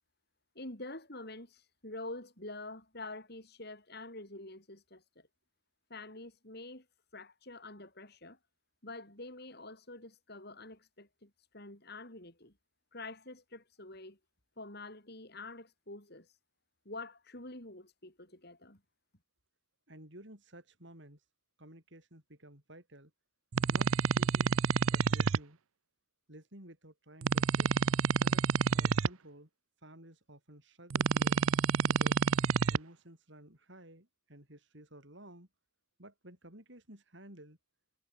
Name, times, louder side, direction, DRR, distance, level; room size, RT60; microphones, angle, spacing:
voice 1, 0.5-5.3 5.9-6.9 7.1-8.4 8.8-12.5 12.9-14.2 14.6-16.3 16.8-18.8, left 2 dB, 50° left, 6.0 m, -47 dB
voice 2, 19.9-21.2 21.6-23.1 23.7-24.6 24.9-25.6 26.3-27.7 28.2-28.5 28.7-29.5 29.8-31.4 31.9-32.2 32.7-35.5 36.0-37.6, right 1 dB, 55° right, 6.9 m, -54 dB
sound 1, 23.5-25.4 27.2-29.1 30.9-32.8, right 5 dB, 80° right, 0.6 m, -28 dB
head